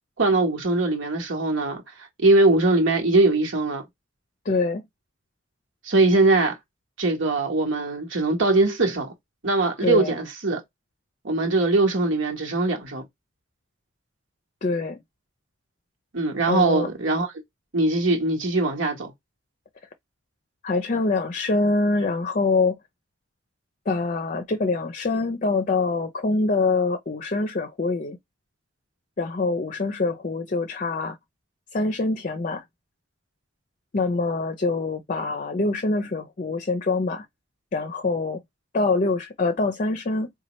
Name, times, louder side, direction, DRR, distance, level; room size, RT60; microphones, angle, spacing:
voice 1, 0.2-1.8 2.2-3.8 5.8-6.6 7.0-9.1 9.4-10.6 11.2-13.0 16.1-17.3 17.7-19.1, right 2 dB, 70° right, 1.1 m, -21 dB
voice 2, 4.4-4.9 9.8-10.1 14.6-15.0 16.5-16.9 20.6-22.8 23.9-28.2 29.2-31.2 31.7-32.6 33.9-37.3 37.7-38.4 38.7-40.3, left 3 dB, 40° left, 0.5 m, -24 dB
4.2 x 2.2 x 3.0 m
head